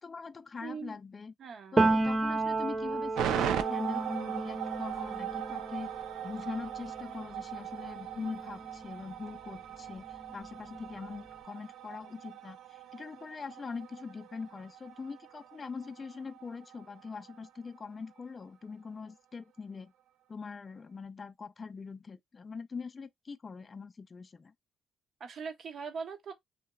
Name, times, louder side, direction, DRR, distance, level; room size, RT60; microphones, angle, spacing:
voice 1, 0.0-1.3 1.7-5.9 6.2-19.9 20.3-24.5, left 5 dB, 35° left, 0.3 m, -42 dB
voice 2, 0.6-1.0 1.4-1.8 25.2-26.3, right 5 dB, 60° right, 0.7 m, -41 dB
Piano, 1.8-9.4 9.7-11.3, right 2 dB, 20° right, 0.5 m, -33 dB
sound 1, 3.1-17.5 17.8-17.9, right 11 dB, 85° right, 0.3 m, -40 dB
2.9 x 2.0 x 2.2 m
cardioid pair, 90°, 0 cm